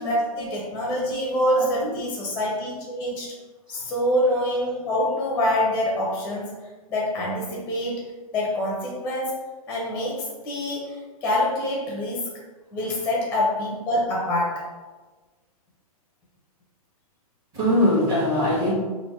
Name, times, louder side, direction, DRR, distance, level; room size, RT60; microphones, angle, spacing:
voice 1, 0.0-3.3 3.7-6.5 6.9-8.0 8.3-9.4 9.7-12.3 12.7-14.7, left 1 dB, 10° left, -2 dB, 0.6 m, -25 dB
voice 2, 1.6-1.9 3.7-3.9 17.5-18.7, left 1 dB, 25° right, -7 dB, 1.4 m, -23 dB
3.4 x 2.5 x 4.4 m, 1.3 s
hypercardioid pair, 150°, 19 cm